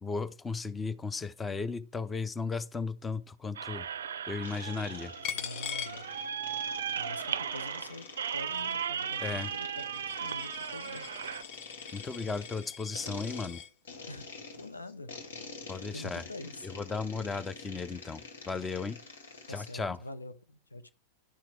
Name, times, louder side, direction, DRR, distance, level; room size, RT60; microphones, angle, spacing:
voice 1, 0.0-3.9 4.3-5.1 9.2-9.5 11.9-13.6 15.7-16.2 16.6-19.0 19.5-20.0, left 4 dB, 15° left, 0.6 m, -35 dB
sound 1, 3.6-11.4, right 8 dB, 65° right, 0.4 m, -36 dB
sound 2, 4.4-19.8, left 4 dB, 65° left, 1.7 m, -47 dB
Coin (dropping), 5.2-6.7 7.1-13.7, left 8 dB, 45° left, 0.8 m, -43 dB
voice 2, 5.3-6.1 7.0-11.1 14.1-15.1 15.6-16.7 19.5-20.9, left 2 dB, 80° left, 0.8 m, -45 dB
11.5 x 5.8 x 4.6 m
figure-of-eight pair, 90°, 0 cm